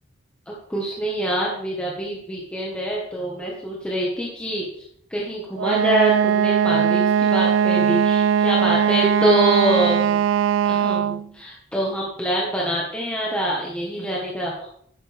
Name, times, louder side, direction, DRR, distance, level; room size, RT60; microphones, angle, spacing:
voice 1, 0.5-10.3 10.6-14.7, right 1 dB, 5° left, -4 dB, 1.7 m, -25 dB
Wind instrument woodwind instrument, 5.6-11.3, right 8 dB, 80° right, 0.3 m, -20 dB
11.5 x 9.3 x 3.6 m, 0.69 s
head